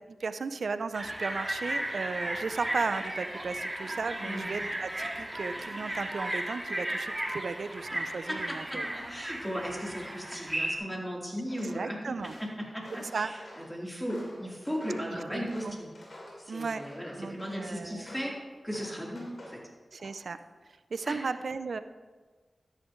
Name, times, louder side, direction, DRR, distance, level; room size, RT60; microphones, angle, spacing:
voice 1, 0.1-8.8 11.7-12.3 13.0-13.3 15.1-15.8 16.5-16.8 17.2-18.0 19.9-20.4 20.9-21.8, right 4 dB, 75° right, 12 dB, 0.5 m, -35 dB
sound 1, 0.9-10.8, right 1 dB, 25° right, 1.8 m, -35 dB
voice 2, 8.3-12.0 12.2-15.9 16.4-18.3 18.6-19.6 21.1-21.2, equal, 5° left, -4 dB, 3.6 m, -36 dB
Walk footsteps, 11.5-11.8 12.2-13.7 14.1-16.4 16.7-17.6 18.0-18.3 18.7-19.6 20.0-20.4, left 1 dB, 60° left, 3.1 m, -48 dB
13.0 x 9.9 x 3.2 m, 1.4 s
cardioid pair, 40°, 0 cm